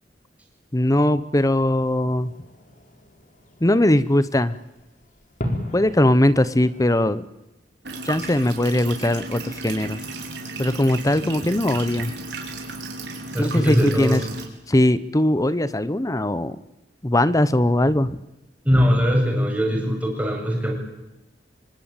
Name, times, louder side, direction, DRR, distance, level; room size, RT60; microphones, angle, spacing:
voice 1, 0.7-2.3 3.6-4.6 5.7-7.3 8.0-10.0 10.6-12.1 13.4-14.2 14.7-16.6 17.0-18.2, left 1 dB, 20° left, 16 dB, 0.9 m, -20 dB
Fireworks, 1.7-7.1, equal, 45° left, 4.5 m, -36 dB
sound 1, 7.8-14.4, right 3 dB, 75° right, 5.1 m, -34 dB
voice 2, 13.3-14.2 18.6-20.7, equal, 10° right, 1 dB, 7.7 m, -21 dB
25.5 x 24.5 x 9.0 m, 0.94 s
head